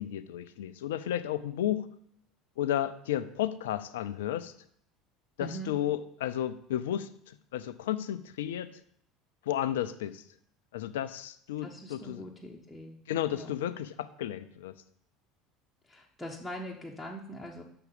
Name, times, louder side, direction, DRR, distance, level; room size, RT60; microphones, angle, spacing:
voice 1, 0.0-1.9 2.6-4.5 5.4-8.7 9.4-10.2 10.7-12.3 13.1-14.7, left 11 dB, 75° left, 13 dB, 0.5 m, -33 dB
voice 2, 5.4-5.7 11.6-13.0 13.3-13.6 15.8-17.6, equal, 5° left, -3 dB, 1.4 m, -42 dB
6.8 x 6.0 x 7.0 m, 0.67 s
hypercardioid pair, 70°, 0 cm